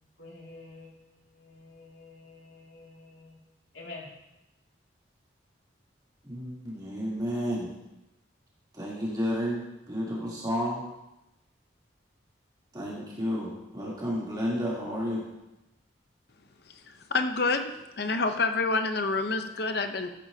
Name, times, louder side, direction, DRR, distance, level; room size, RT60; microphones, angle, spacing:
voice 1, 0.2-3.4 3.7-4.1, left 2 dB, 80° left, -3 dB, 2.6 m, -48 dB
voice 2, 6.2-7.7 8.7-10.9 12.7-15.2, equal, 20° right, -7 dB, 3.2 m, -31 dB
voice 3, 16.9-17.7 18.0-20.1, left 3 dB, 55° left, 7 dB, 0.8 m, -27 dB
14.0 x 10.5 x 2.8 m, 0.94 s
head